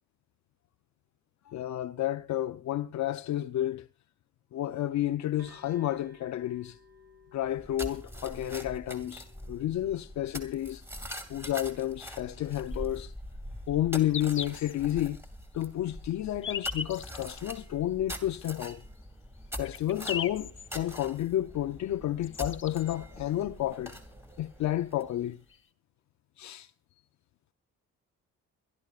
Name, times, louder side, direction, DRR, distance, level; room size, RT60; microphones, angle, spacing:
voice 1, 1.5-3.9 4.5-6.8 7.3-10.8 11.3-13.1 13.7-15.2 15.5-18.8 19.6-24.0 24.4-25.4 26.4-26.7, left 13 dB, 65° left, 0.6 m, -31 dB
sound 1, 5.4-12.9, left 2 dB, 55° right, 6.9 m, -59 dB
sound 2, 7.4-25.3, equal, 10° right, 2.4 m, -44 dB
sound 3, 12.7-12.8 13.7-13.8 14.1-14.7 15.2-15.3 16.1-17.4 18.3-18.4 19.0-19.1 19.4-20.8 21.9-22.0 22.2-22.9 24.4-24.5 24.7-24.8 25.5-25.6, left 6 dB, 40° left, 1.0 m, -38 dB
30.0 x 12.0 x 2.4 m
cardioid pair, 90°, 30 cm